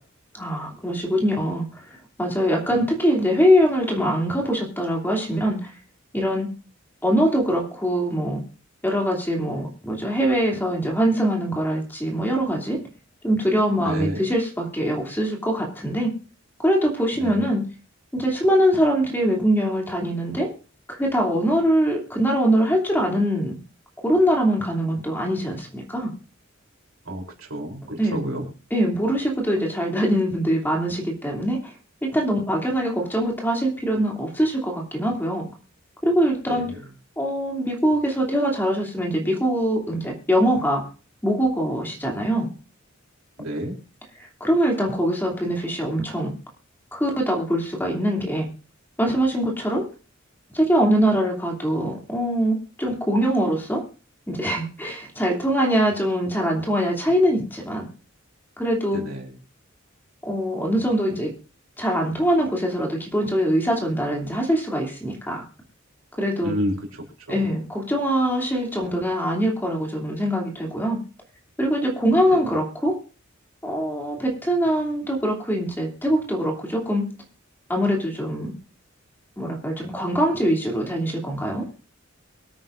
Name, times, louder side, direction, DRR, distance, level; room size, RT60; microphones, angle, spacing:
voice 1, 0.3-1.9 2.2-5.7 6.1-6.5 7.0-8.4 8.8-12.8 13.2-16.1 16.6-17.7 18.1-20.5 20.9-23.6 24.0-26.1 28.0-28.2 28.7-31.7 32.0-35.5 36.0-36.7 37.2-40.8 41.2-42.5 44.2-46.3 46.9-48.5 49.0-49.8 50.5-53.8 54.3-57.9 58.6-59.0 60.2-61.3 61.8-65.4 66.2-66.5 67.3-71.0 71.6-73.0 73.6-77.1 77.7-78.5 79.4-81.7, equal, 10° left, 0 dB, 2.8 m, -23 dB
voice 2, 13.8-14.2 17.2-17.4 27.1-28.4 36.5-36.8 43.4-43.7 58.9-59.3 66.4-67.5 72.1-72.4, equal, 85° right, 1 dB, 3.4 m, -30 dB
23.5 x 9.3 x 2.6 m, 0.36 s
head